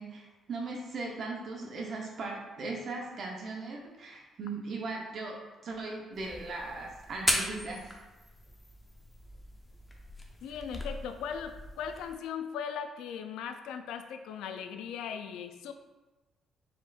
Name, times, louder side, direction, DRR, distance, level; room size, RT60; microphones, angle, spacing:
voice 1, 0.0-5.4 5.6-7.9, right 3 dB, 55° right, 0 dB, 0.7 m, -38 dB
sound 1, 6.1-12.1, left 1 dB, 10° left, 0.7 m, -37 dB
voice 2, 10.4-15.7, left 7 dB, 90° left, 8 dB, 0.3 m, -38 dB
4.3 x 4.1 x 2.3 m, 1.1 s
cardioid pair, 90°, 0 cm